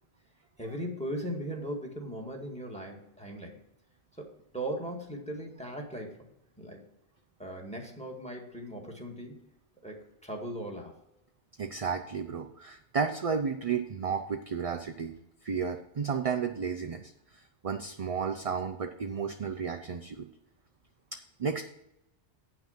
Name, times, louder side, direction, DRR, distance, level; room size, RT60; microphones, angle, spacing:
voice 1, 0.6-3.6 4.2-6.3 6.6-6.8 7.4-9.4 9.8-11.0, right 1 dB, 5° left, 1 dB, 1.8 m, -38 dB
voice 2, 11.6-15.1 15.4-20.3 21.1-21.6, right 6 dB, 45° right, 6 dB, 0.5 m, -33 dB
9.2 x 6.0 x 5.7 m, 0.84 s
omnidirectional pair, 1.2 m